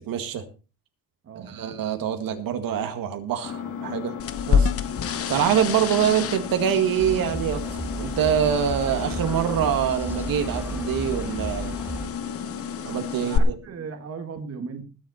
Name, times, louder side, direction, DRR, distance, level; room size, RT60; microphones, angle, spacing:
voice 1, 0.1-0.4 1.4-4.2 4.5-4.7 5.3-11.8 12.8-13.6, right 9 dB, 75° right, 2.0 m, -25 dB
voice 2, 1.2-1.6 13.1-14.8, right 5 dB, 45° right, 2.0 m, -37 dB
Engine, 3.4-13.4, left 8 dB, 55° left, 2.5 m, -34 dB
sound 1, 4.2-13.4, left 7 dB, 40° left, 1.0 m, -30 dB
sound 2, 7.0-12.1, right 2 dB, 5° right, 1.3 m, -34 dB
20.0 x 7.5 x 4.3 m
cardioid pair, 175°, 35 cm